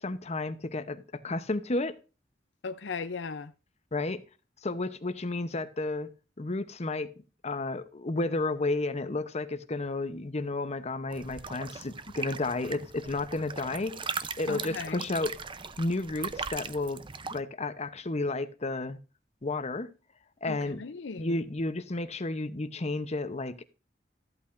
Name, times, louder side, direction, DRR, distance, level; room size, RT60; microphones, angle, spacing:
voice 1, 0.0-2.0 3.9-4.2 4.6-6.1 6.4-7.1 7.4-15.4 15.8-17.0 17.3-19.0 19.4-19.9 20.4-20.8 21.2-23.6, left 2 dB, 35° left, 0.8 m, -32 dB
voice 2, 2.6-3.5 14.5-15.0 20.5-21.4, left 4 dB, 70° left, 0.6 m, -37 dB
sound 1, 11.1-17.4, right 5 dB, 25° right, 0.6 m, -39 dB
13.5 x 8.6 x 2.6 m
head